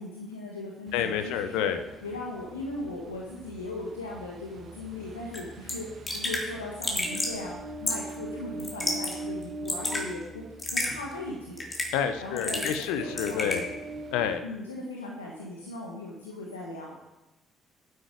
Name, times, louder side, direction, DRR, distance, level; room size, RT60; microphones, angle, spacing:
voice 1, 0.0-1.7 2.0-11.6 12.2-12.7 13.0-13.8 14.4-17.0, left 2 dB, 90° left, -2 dB, 1.2 m, -38 dB
voice 2, 0.9-1.8 11.9-13.7 14.1-14.4, left 8 dB, 75° left, 10 dB, 0.8 m, -28 dB
Ocean, 0.9-14.4, right 2 dB, 55° right, 1.5 m, -43 dB
Raindrop / Drip, 5.3-5.4 5.7-5.8 6.1-6.4 6.8-7.4 7.9-8.1 8.6-9.1 9.4-10.0 10.6-10.9 11.6-12.0 12.4-12.9 13.2-13.6, left 2 dB, 30° left, 3.5 m, -30 dB
11.5 x 9.5 x 4.9 m, 0.99 s
figure-of-eight pair, 45°, 0 cm